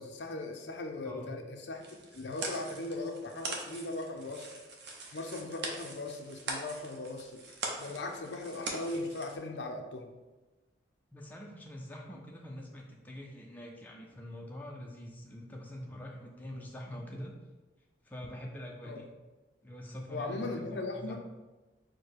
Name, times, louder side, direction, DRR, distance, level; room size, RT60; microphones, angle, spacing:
voice 1, 0.0-4.5 5.1-7.4 7.8-10.1 12.1-12.2 18.8-19.0 20.1-21.2, left 2 dB, 75° left, 4 dB, 0.5 m, -39 dB
voice 2, 1.0-1.3 11.1-17.3 18.0-19.1 19.6-21.2, equal, 10° left, -1 dB, 0.4 m, -45 dB
sound 1, 1.8-9.4, right 3 dB, 70° right, 0.7 m, -42 dB
4.5 x 2.2 x 4.7 m, 1.2 s
head